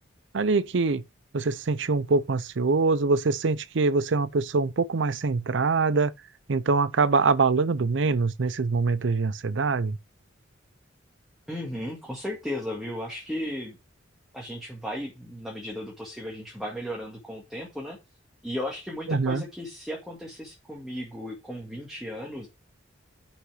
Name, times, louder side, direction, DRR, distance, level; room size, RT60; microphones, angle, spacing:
voice 1, 0.3-1.0 1.3-6.1 6.5-10.0 19.1-19.4, right 4 dB, 65° right, 0.5 m, -24 dB
voice 2, 11.5-13.8 14.3-18.0 18.4-22.5, left 1 dB, ahead, 1.9 m, -35 dB
5.9 x 5.7 x 6.2 m
head